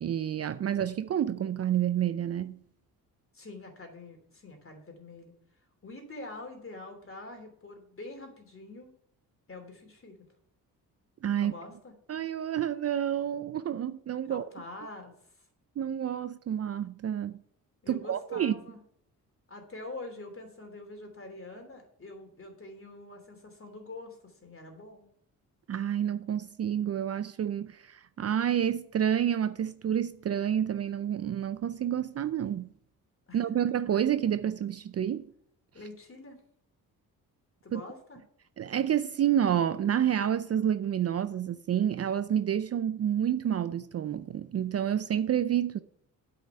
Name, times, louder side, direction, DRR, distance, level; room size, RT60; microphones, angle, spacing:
voice 1, 0.0-2.6 11.2-11.5 12.1-14.4 15.8-17.4 17.9-18.6 25.7-32.7 33.3-35.3 37.7-37.8 38.6-45.8, right 9 dB, 40° right, 0.5 m, -29 dB
voice 2, 3.3-5.3 5.8-8.9 9.5-10.2 11.4-11.9 14.3-15.5 17.8-18.8 19.5-25.1 33.3-33.6 35.7-36.4 37.6-38.2, left 2 dB, 35° left, 3.0 m, -45 dB
8.7 x 4.9 x 6.8 m
supercardioid pair, 65°, 37 cm